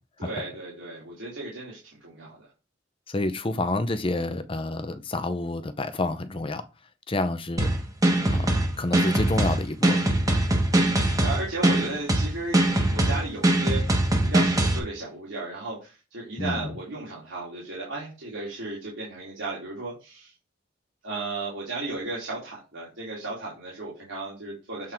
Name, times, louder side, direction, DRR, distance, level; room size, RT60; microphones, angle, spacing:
voice 1, 0.2-2.5 10.8-20.3 21.0-24.9, right 2 dB, 85° right, 2.6 m, -35 dB
voice 2, 3.1-6.6 7.1-7.7 8.3-10.0 16.4-16.8, left 2 dB, 30° left, 0.6 m, -29 dB
sound 1, 7.6-14.8, right 1 dB, 20° right, 1.2 m, -22 dB
7.7 x 3.6 x 4.4 m
head